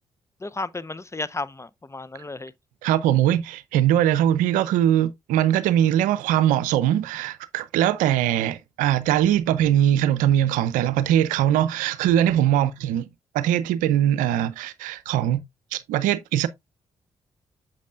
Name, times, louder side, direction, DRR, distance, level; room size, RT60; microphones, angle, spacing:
voice 1, 0.4-2.5 12.5-12.6, left 3 dB, 20° left, 0.7 m, -33 dB
voice 2, 2.8-13.1 13.3-15.4 15.7-16.5, right 11 dB, 80° right, 0.6 m, -21 dB
8.3 x 6.8 x 2.4 m
hypercardioid pair, 40°, 13 cm